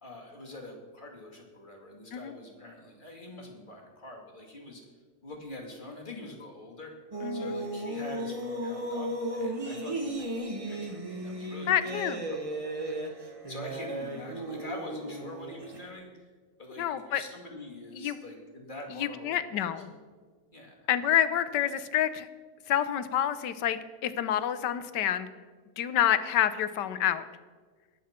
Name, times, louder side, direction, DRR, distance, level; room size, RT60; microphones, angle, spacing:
voice 1, 0.0-4.8 5.2-6.9 7.3-16.3 16.6-19.3 19.7-19.8 20.5-20.7, left 1 dB, 30° left, 0 dB, 2.4 m, -45 dB
sound 1, 7.1-15.9, right 1 dB, 25° right, 1.0 m, -35 dB
voice 2, 7.2-7.6 11.7-12.2 16.8-17.2 17.9-18.2 19.0-19.9 20.9-22.3 22.7-25.3 25.8-27.3, left 10 dB, 80° left, 13 dB, 1.4 m, -28 dB
20.5 x 7.3 x 4.3 m, 1.5 s
omnidirectional pair, 1.8 m